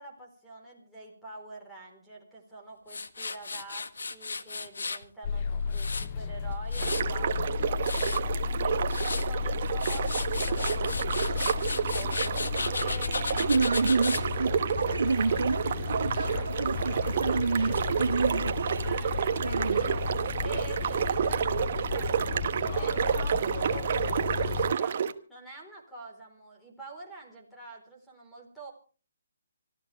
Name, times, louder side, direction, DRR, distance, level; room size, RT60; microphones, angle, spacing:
voice 1, 0.0-13.9 18.8-28.7, right 3 dB, ahead, 4.1 m, -47 dB
Tools, 2.9-5.0 5.5-7.2 7.6-8.2 8.7-9.3 9.7-14.2, left 4 dB, 85° left, 1.5 m, -35 dB
sound 1, 5.2-24.8, left 5 dB, 30° left, 0.8 m, -33 dB
sound 2, 6.8-25.1, right 7 dB, 40° right, 1.1 m, -30 dB
voice 2, 13.5-18.9 19.4-19.9, right 4 dB, 90° right, 1.7 m, -29 dB
25.5 x 13.5 x 3.4 m
hypercardioid pair, 165°, 0 cm